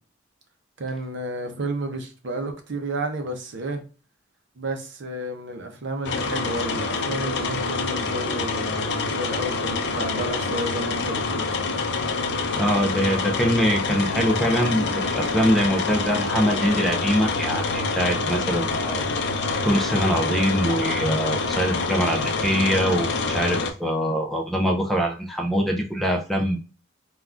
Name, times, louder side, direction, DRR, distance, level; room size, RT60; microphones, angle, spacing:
voice 1, 0.8-3.8 4.6-11.7, right 1 dB, 65° right, 0.6 m, -31 dB
sound 1, 6.0-23.7, left 3 dB, 60° left, 0.5 m, -26 dB
voice 2, 12.5-19.0 19.6-26.6, equal, ahead, 0.4 m, -23 dB
3.5 x 2.3 x 2.4 m
head